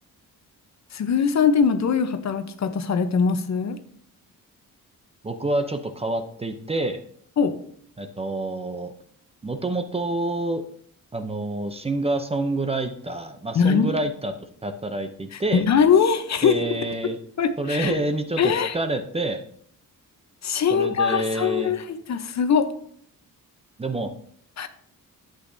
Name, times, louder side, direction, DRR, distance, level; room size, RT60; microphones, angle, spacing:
voice 1, 0.9-3.8 7.4-7.5 13.5-14.0 15.3-16.6 17.4-18.0 18.4-18.8 20.4-22.7 24.6-24.7, left 6 dB, 50° left, 9 dB, 0.8 m, -21 dB
voice 2, 5.2-7.0 8.0-8.9 9.4-10.6 11.1-14.3 14.6-15.6 16.4-17.2 17.6-19.4 20.7-21.7 23.8-24.1, right 2 dB, 15° right, 7 dB, 0.6 m, -27 dB
11.5 x 8.0 x 2.7 m, 0.64 s
wide cardioid pair, 165°, 34 cm